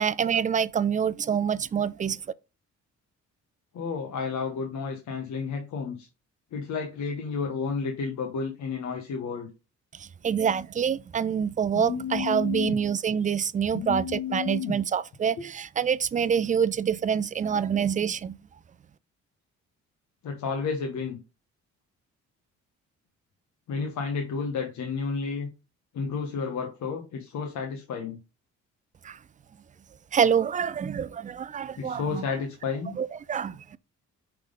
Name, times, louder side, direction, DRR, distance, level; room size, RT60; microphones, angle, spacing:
voice 1, 0.0-2.2 10.0-18.4 29.0-29.2 30.1-32.2 32.9-33.8, right 7 dB, 25° right, 0.4 m, -26 dB
voice 2, 3.7-6.1 6.5-9.5 11.7-12.8 13.7-14.8 15.4-15.5 20.2-21.2 23.7-25.5 25.9-28.2 31.8-32.9, left 5 dB, 70° left, 1.2 m, -31 dB
5.8 x 3.5 x 5.0 m
cardioid pair, 90°, 30 cm